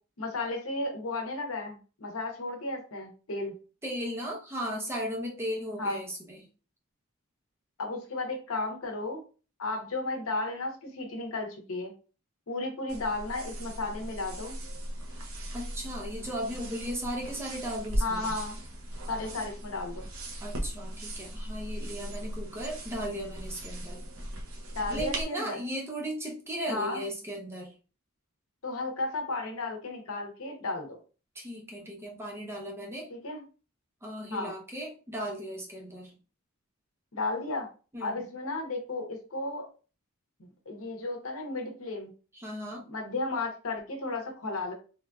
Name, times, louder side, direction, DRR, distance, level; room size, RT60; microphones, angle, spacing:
voice 1, 0.2-3.6 5.8-6.0 7.8-9.2 9.6-11.9 12.5-14.6 18.0-18.6 19.1-20.1 24.7-25.6 26.7-27.0 28.6-30.9 33.1-33.4 34.3-34.5 37.1-37.7 38.0-39.7 40.4-42.1 42.9-44.7, left 2 dB, 80° left, 3 dB, 0.8 m, -34 dB
voice 2, 3.8-6.4 15.5-18.3 20.4-24.0 24.9-27.7 31.3-33.1 34.0-36.2 37.9-38.3 42.3-42.9, equal, 10° right, -1 dB, 0.6 m, -36 dB
sound 1, 12.9-25.2, right 1 dB, 85° right, 0.7 m, -38 dB
3.3 x 2.5 x 2.2 m, 0.35 s
head